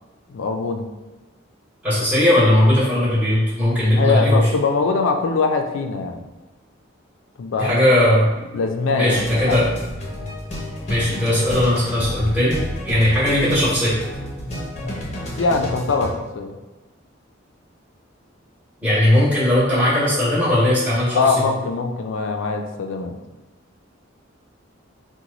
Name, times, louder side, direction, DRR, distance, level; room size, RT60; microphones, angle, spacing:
voice 1, 0.3-0.8 4.0-6.3 7.4-7.8 8.5-9.7 13.2-13.3 14.8-14.9 15.4-16.6 21.1-23.1, left 4 dB, 80° left, 5 dB, 0.4 m, -22 dB
voice 2, 1.8-4.5 7.6-8.3 8.9-9.6 10.9-14.0 18.8-21.2, left 1 dB, 5° right, -10 dB, 1.0 m, -18 dB
sound 1, 9.1-16.1, equal, 35° left, 0.6 m, -30 dB
3.0 x 2.1 x 3.8 m, 1.1 s
head